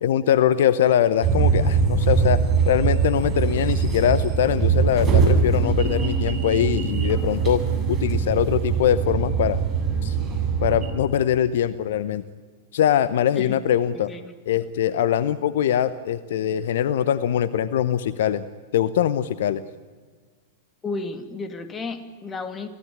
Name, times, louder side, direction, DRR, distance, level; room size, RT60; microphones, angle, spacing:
voice 1, 0.0-7.6 7.9-9.6 10.0-10.2 10.6-12.2 12.7-14.1 14.5-18.5 18.7-19.6, left 10 dB, 60° left, 16 dB, 0.8 m, -22 dB
sound 1, 1.2-10.9, right 6 dB, 25° right, 7.6 m, -22 dB
voice 2, 13.9-14.3 20.8-22.7, left 3 dB, 20° left, 8 dB, 2.8 m, -33 dB
28.0 x 17.0 x 10.0 m, 1.5 s
figure-of-eight pair, 95°, 0 cm